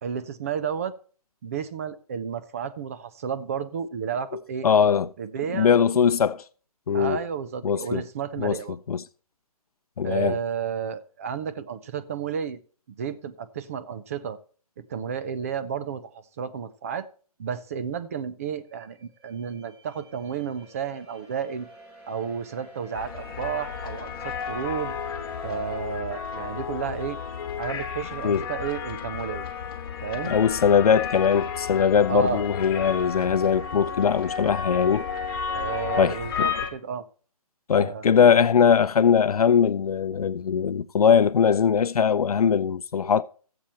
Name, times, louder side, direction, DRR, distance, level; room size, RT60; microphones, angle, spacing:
voice 1, 0.0-0.9 1.4-4.7 5.2-5.7 6.9-8.8 10.0-12.6 13.0-14.4 14.8-17.1 17.4-21.7 22.1-24.9 25.4-27.2 27.6-29.5 30.0-30.3 32.1-32.4 35.5-37.0 37.8-38.2, right 7 dB, 25° right, 0.5 m, -32 dB
voice 2, 4.3-5.1 5.5-6.4 6.9-7.2 7.6-8.0 8.4-9.0 10.0-10.4 28.2-28.4 30.3-35.0 36.0-36.5 37.7-43.2, left 7 dB, 70° left, 0.6 m, -21 dB
sound 1, 18.7-25.8, right 2 dB, 5° right, 1.2 m, -46 dB
sound 2, 22.9-36.7, left 7 dB, 40° left, 1.5 m, -32 dB
13.0 x 7.7 x 4.2 m
hypercardioid pair, 160°, 19 cm